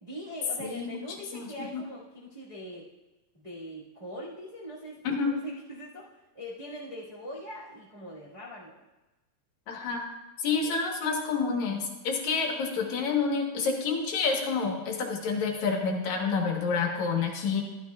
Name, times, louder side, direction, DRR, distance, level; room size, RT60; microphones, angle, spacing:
voice 1, 0.0-2.9 3.3-8.8 10.6-10.7, equal, 20° right, -8 dB, 1.1 m, -42 dB
voice 2, 0.6-1.0 1.3-1.8 5.0-5.3 9.7-10.0 10.4-17.6, left 5 dB, 80° left, 2 dB, 2.6 m, -28 dB
12.5 x 12.0 x 2.3 m, 1.1 s
omnidirectional pair, 3.3 m